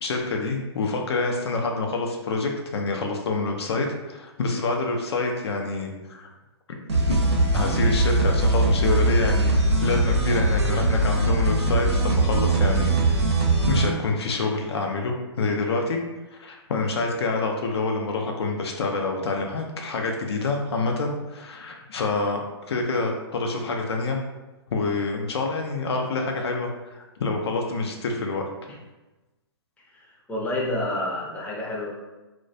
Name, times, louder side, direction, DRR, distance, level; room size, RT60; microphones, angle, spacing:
voice 1, 0.0-6.3 7.1-7.2 7.5-9.5 9.8-13.2 13.7-16.0 16.3-22.4 22.7-24.2 24.7-28.4, left 3 dB, 75° left, 2 dB, 0.4 m, -27 dB
sound 1, 6.9-13.9, right 2 dB, 85° right, 0.7 m, -21 dB
voice 2, 29.9-31.9, left 1 dB, 10° left, -4 dB, 0.5 m, -29 dB
2.2 x 2.1 x 2.5 m, 1.1 s
hypercardioid pair, 125°, 14 cm